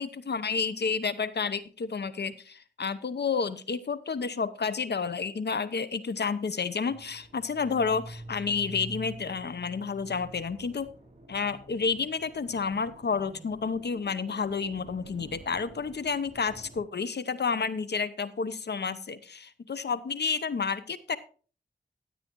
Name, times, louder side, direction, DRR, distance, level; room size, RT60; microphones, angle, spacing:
voice 1, 0.0-10.9 11.3-21.2, left 5 dB, 70° left, 15 dB, 0.8 m, -30 dB
sound 1, 6.9-16.8, right 2 dB, 35° right, 3.7 m, -47 dB
14.5 x 8.3 x 3.0 m, 0.39 s
cardioid pair, 50°, 18 cm